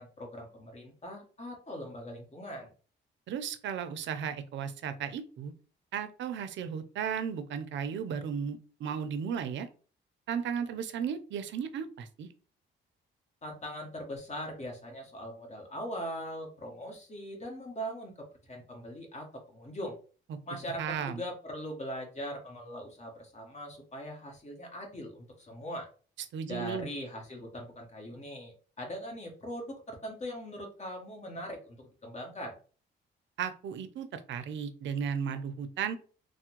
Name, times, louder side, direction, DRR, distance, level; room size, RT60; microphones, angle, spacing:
voice 1, 0.0-2.7 13.4-19.9 20.5-25.9 26.5-32.5, equal, 35° left, 1 dB, 1.2 m, -41 dB
voice 2, 3.3-5.5 5.9-9.7 10.3-12.3 20.3-20.4 20.8-21.2 26.3-26.9 33.4-36.0, right 7 dB, 70° right, 10 dB, 0.5 m, -35 dB
3.3 x 2.1 x 2.9 m, 0.38 s
cardioid pair, 90°, 20 cm